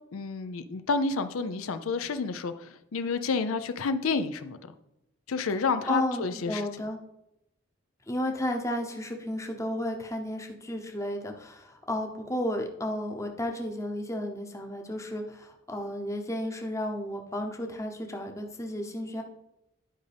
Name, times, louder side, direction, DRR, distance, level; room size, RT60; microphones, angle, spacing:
voice 1, 0.1-4.6 5.3-6.6, left 4 dB, 90° left, 10 dB, 0.5 m, -29 dB
voice 2, 5.9-7.0 8.1-19.2, left 1 dB, 15° left, 3 dB, 0.8 m, -33 dB
11.0 x 5.2 x 3.4 m, 0.87 s
head